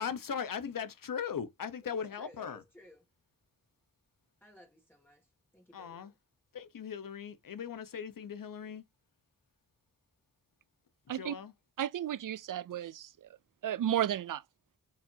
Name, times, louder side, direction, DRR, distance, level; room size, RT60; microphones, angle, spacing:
voice 1, 0.0-2.6 5.7-6.1 6.5-8.8 11.1-11.5, left 7 dB, 85° left, 1.2 m, -39 dB
voice 2, 1.8-3.0 4.4-5.3 5.5-6.1, left 1 dB, 5° left, 2.2 m, -58 dB
voice 3, 11.8-13.1 13.6-14.4, right 11 dB, 75° right, 0.5 m, -33 dB
8.4 x 4.8 x 2.8 m
wide cardioid pair, 85°, 32 cm